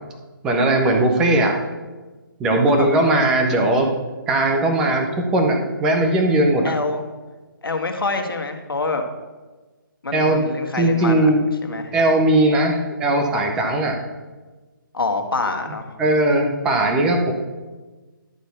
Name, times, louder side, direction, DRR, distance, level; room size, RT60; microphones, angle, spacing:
voice 1, 0.4-1.6 2.4-3.9 4.3-6.7 10.1-10.4 10.7-11.4 11.9-14.0 16.0-17.3, right 1 dB, 5° right, 4 dB, 0.4 m, -18 dB
voice 2, 2.7-3.0 6.6-7.0 7.6-9.0 10.0-11.3 11.6-11.9 14.9-15.9, left 3 dB, 80° left, 5 dB, 1.5 m, -26 dB
11.5 x 4.2 x 6.7 m, 1.3 s
hypercardioid pair, 165°, 12 cm